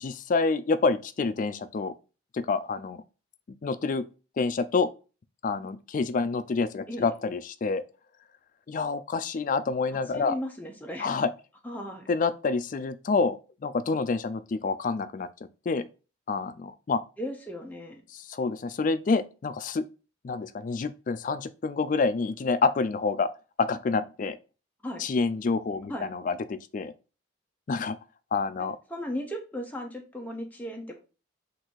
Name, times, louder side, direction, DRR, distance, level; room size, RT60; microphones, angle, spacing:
voice 1, 0.0-1.9 2.3-3.0 3.6-4.1 4.4-4.9 5.4-7.8 8.7-10.4 11.0-11.3 12.1-15.3 15.7-15.9 16.3-17.0 18.1-19.8 20.2-23.3 23.6-24.4 25.0-26.9 27.7-28.0 28.3-28.8, left 4 dB, 40° left, 0.3 m, -27 dB
voice 2, 9.9-11.1 11.6-12.1 17.2-18.0 24.8-25.0 25.8-26.1 28.9-31.0, equal, 10° left, 0.7 m, -36 dB
3.9 x 2.6 x 4.5 m
head